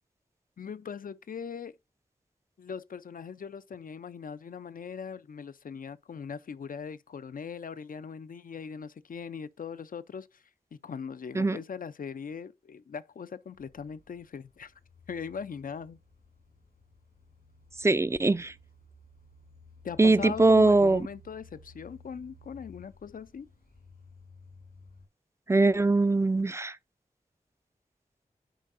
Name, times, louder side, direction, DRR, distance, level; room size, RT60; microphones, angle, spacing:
voice 1, 0.6-1.7 2.6-10.4 10.7-14.7 15.1-16.0 19.8-23.5, left 6 dB, 65° left, 0.4 m, -40 dB
sound 1, 13.5-25.1, left 4 dB, 85° left, 2.8 m, -54 dB
voice 2, 17.8-18.5 20.0-21.1 25.5-26.8, right 2 dB, 20° right, 0.4 m, -22 dB
10.0 x 4.6 x 2.5 m
cardioid pair, 45°, 15 cm